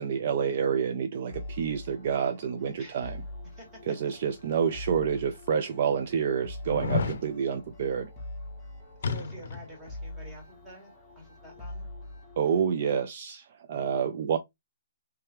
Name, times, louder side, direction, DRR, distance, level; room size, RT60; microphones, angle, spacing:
voice 1, 0.0-3.2 3.9-8.1 12.4-14.4, right 7 dB, 40° right, 0.3 m, -28 dB
sound 1, 1.3-12.6, left 1 dB, 5° left, 1.1 m, -44 dB
voice 2, 2.8-3.1 3.5-4.0 9.0-11.9, right 1 dB, 10° right, 1.4 m, -48 dB
sound 2, 4.7-4.8 5.5-5.6 6.7-7.2 9.0-9.7 10.0-10.1, left 4 dB, 55° left, 0.6 m, -30 dB
3.3 x 3.3 x 3.0 m
hypercardioid pair, 170°, 0 cm